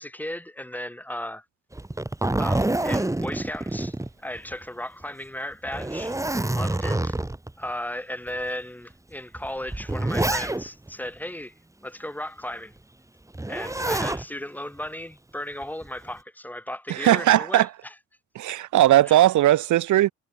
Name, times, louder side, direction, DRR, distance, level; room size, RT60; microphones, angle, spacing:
voice 1, 0.0-1.4 2.4-7.2 7.6-11.5 11.8-12.7 13.5-18.0 19.0-19.3, left 1 dB, 5° left, 3.5 m, -35 dB
Zipper (clothing), 1.7-4.6 5.0-5.1 5.7-7.5 8.3-8.4 9.3-10.9 13.3-14.2 15.6-16.1, right 2 dB, 10° right, 2.6 m, -27 dB
voice 2, 16.9-17.7 18.4-20.1, right 14 dB, 75° right, 1.2 m, -18 dB
cardioid pair, 90°, 30 cm